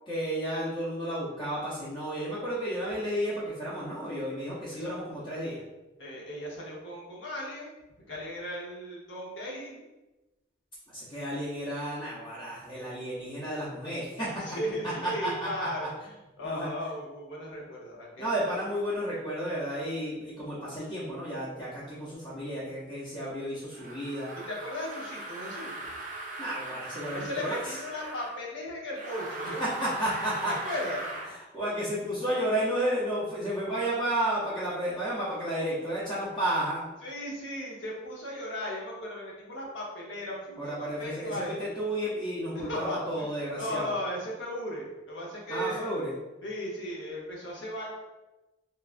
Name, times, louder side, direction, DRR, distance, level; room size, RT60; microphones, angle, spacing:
voice 1, 0.1-5.6 10.9-14.6 14.8-15.9 16.4-16.7 18.2-24.3 26.4-27.6 29.6-30.5 31.5-36.8 40.6-43.9 45.5-46.1, right 1 dB, 25° left, -10 dB, 0.6 m, -32 dB
voice 2, 6.0-7.7 8.1-9.8 14.4-18.3 24.5-25.8 27.1-29.6 30.6-31.3 37.0-41.7 42.5-45.9 46.4-47.9, left 1 dB, 75° left, -3 dB, 0.8 m, -36 dB
sound 1, 23.7-28.4 28.9-31.3, right 2 dB, 40° right, 0.4 m, -40 dB
3.1 x 2.3 x 2.4 m, 1.1 s
head